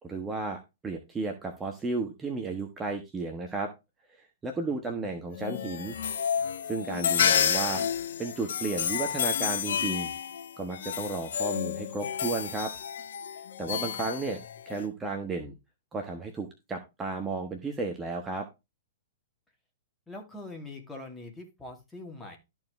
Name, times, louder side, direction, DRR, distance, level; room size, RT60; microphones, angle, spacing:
voice 1, 0.0-3.7 4.2-6.0 6.6-7.8 8.2-10.1 10.6-12.7 13.3-14.4 14.7-15.6 15.9-18.5, right 3 dB, 15° right, 3 dB, 1.3 m, -33 dB
sound 1, 5.3-14.9, left 8 dB, 65° left, 0.7 m, -30 dB
voice 2, 13.6-14.4 20.1-22.4, left 2 dB, 10° left, 2 dB, 2.5 m, -44 dB
13.0 x 4.6 x 3.3 m, 0.24 s
hypercardioid pair, 115°, 0 cm